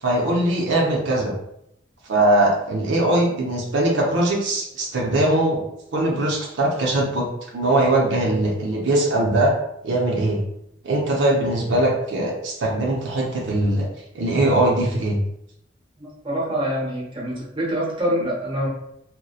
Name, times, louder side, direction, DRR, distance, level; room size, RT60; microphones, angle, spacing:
voice 1, 0.0-1.3 2.1-5.6 5.9-7.3 7.5-9.5 9.8-10.4 10.8-13.9 14.1-15.2, right 1 dB, 75° right, -2 dB, 0.5 m, -21 dB
voice 2, 16.0-18.7, equal, 25° right, -5 dB, 0.7 m, -25 dB
2.7 x 2.1 x 2.3 m, 0.80 s
head